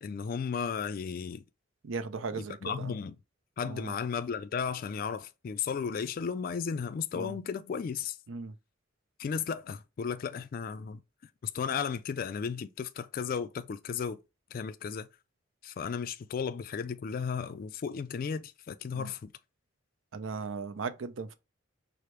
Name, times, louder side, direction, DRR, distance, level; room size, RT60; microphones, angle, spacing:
voice 1, 0.0-1.4 2.3-3.2 3.6-8.2 9.2-11.0 11.4-14.2 14.5-15.1 15.6-19.3, left 6 dB, 45° left, 0.3 m, -34 dB
voice 2, 1.8-2.9 3.6-3.9 7.1-7.4 8.3-8.5 18.9-19.1 20.1-21.3, right 4 dB, 80° right, 0.5 m, -37 dB
4.9 x 2.0 x 4.4 m
head